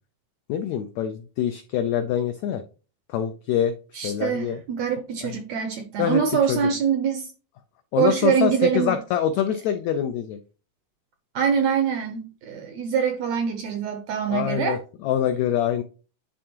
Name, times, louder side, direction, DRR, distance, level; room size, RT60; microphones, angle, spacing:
voice 1, 0.5-2.6 3.1-4.6 5.2-5.4 6.0-6.2 6.5-6.6 7.9-10.4 14.3-15.8, left 9 dB, 85° left, 1.6 m, -25 dB
voice 2, 3.9-7.3 8.0-9.0 11.3-14.8, right 7 dB, 80° right, 1.6 m, -24 dB
10.5 x 3.6 x 2.9 m
omnidirectional pair, 3.9 m